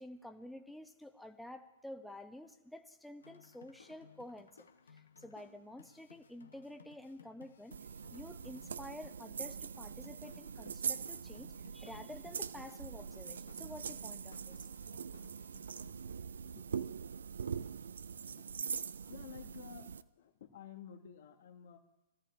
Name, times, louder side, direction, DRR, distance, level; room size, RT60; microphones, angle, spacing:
voice 1, 0.0-7.8 8.1-14.7 16.5-16.7, left 1 dB, ahead, 6 dB, 0.8 m, -50 dB
sound 1, 3.2-16.2, left 6 dB, 85° left, 0.8 m, -61 dB
sound 2, 7.7-20.0, right 6 dB, 75° right, 0.3 m, -43 dB
voice 2, 19.0-21.8, left 9 dB, 60° left, 5 dB, 1.4 m, -52 dB
22.0 x 13.5 x 2.6 m, 1.0 s
hypercardioid pair, 125°, 0 cm